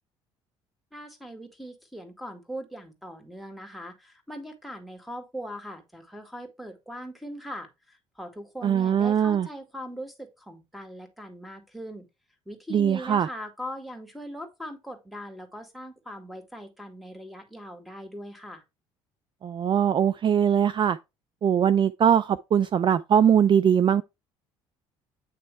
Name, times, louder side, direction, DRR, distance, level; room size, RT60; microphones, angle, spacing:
voice 1, 0.9-12.1 12.5-18.6, equal, ahead, 2.1 m, -40 dB
voice 2, 8.6-9.5 12.7-13.3 19.4-21.0 21.4-24.0, right 8 dB, 40° right, 0.4 m, -21 dB
8.8 x 3.1 x 4.6 m
hypercardioid pair, 65°, 13 cm